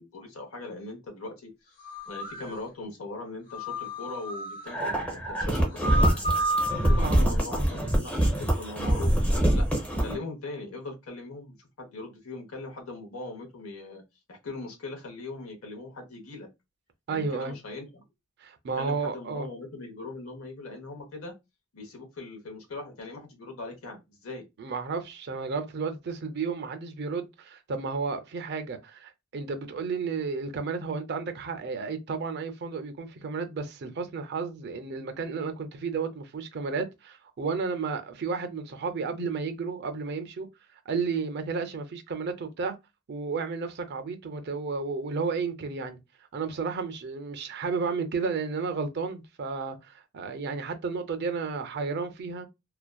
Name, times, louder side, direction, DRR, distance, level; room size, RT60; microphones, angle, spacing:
voice 1, 0.0-1.7 2.1-6.2 6.9-9.2 9.5-9.7 10.0-14.0 14.3-16.5 17.1-18.0 18.7-21.3 21.7-24.4, left 2 dB, 75° left, 0.8 m, -40 dB
sound 1, 1.8-2.5 3.5-4.7 5.6-7.1, right 1 dB, 40° left, 1.1 m, -31 dB
sound 2, 4.7-10.2, right 1 dB, 5° left, 0.6 m, -25 dB
voice 2, 6.8-7.7 17.1-17.6 18.4-19.5 24.6-40.5 40.9-42.8 43.1-46.0 46.3-52.5, right 4 dB, 50° right, 0.4 m, -32 dB
2.5 x 2.2 x 2.2 m
head